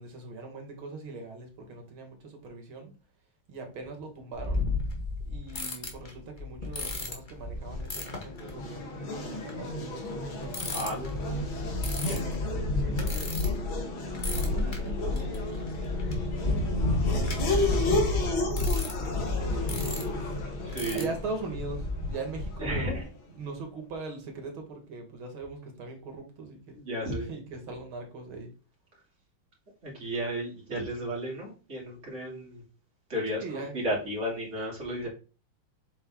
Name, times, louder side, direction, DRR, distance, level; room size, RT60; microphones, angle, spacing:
voice 1, 0.0-2.9 3.5-4.7 5.3-11.9 12.7-13.6 14.3-15.6 16.7-18.3 19.3-20.3 20.9-23.0 23.3-26.8 27.1-28.5 33.4-33.8, right 3 dB, 75° right, 3 dB, 2.6 m, -41 dB
sound 1, 4.4-8.6 9.5-9.7 10.5-13.8 14.1-23.0, left 2 dB, 25° left, 1.3 m, -33 dB
Race car auto racing / Accelerating revving vroom, 7.6-23.2, left 2 dB, 70° left, 2.2 m, -32 dB
voice 2, 10.7-11.2 12.0-12.2 20.6-21.1 22.6-23.0 26.7-27.3 29.8-32.6 33.1-35.1, equal, 35° right, -3 dB, 3.1 m, -33 dB
7.8 x 4.1 x 3.7 m, 0.34 s
omnidirectional pair, 2.3 m